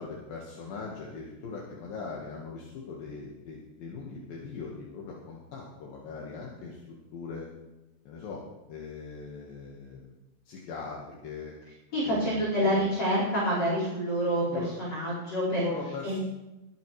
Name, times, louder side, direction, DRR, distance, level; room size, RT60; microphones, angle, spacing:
voice 1, 0.0-6.8 7.1-7.5 8.0-8.4 8.7-10.1 10.5-11.5 12.0-12.8 14.4-14.7 15.5-16.2, left 4 dB, 65° left, -3 dB, 2.5 m, -40 dB
voice 2, 11.9-14.5 14.8-15.6 16.0-16.2, equal, 30° left, -6 dB, 5.5 m, -27 dB
21.0 x 11.0 x 3.2 m, 1.0 s
omnidirectional pair, 5.9 m